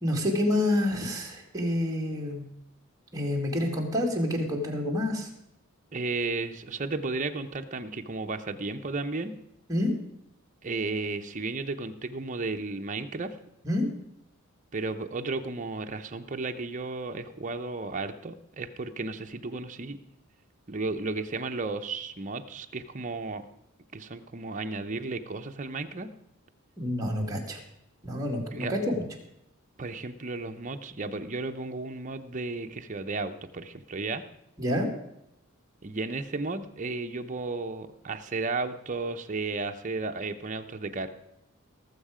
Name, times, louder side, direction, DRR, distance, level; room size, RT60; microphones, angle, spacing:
voice 1, 0.0-2.4 3.1-5.3 9.7-9.9 13.6-13.9 26.8-27.6 28.0-29.0 34.6-34.9, left 1 dB, 15° right, 0 dB, 2.1 m, -28 dB
voice 2, 5.9-9.3 10.6-13.4 14.7-20.0 20.7-23.4 23.9-26.1 28.5-28.7 29.8-34.2 35.8-41.1, right 3 dB, 35° right, 6 dB, 0.8 m, -33 dB
18.5 x 7.3 x 5.0 m, 0.82 s
head